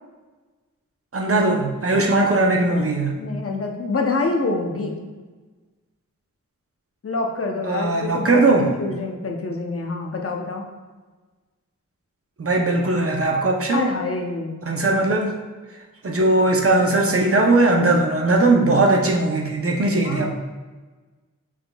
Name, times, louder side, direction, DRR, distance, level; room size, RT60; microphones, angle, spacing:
voice 1, 1.1-3.2 7.6-8.7 12.4-13.9 14.6-15.3 16.0-20.3, right 2 dB, 45° right, 1 dB, 0.7 m, -19 dB
voice 2, 3.2-4.9 7.0-10.6 13.7-14.6 20.0-20.3, left 3 dB, 45° left, 2 dB, 0.7 m, -26 dB
6.0 x 3.6 x 2.3 m, 1.3 s
wide cardioid pair, 65°, 32 cm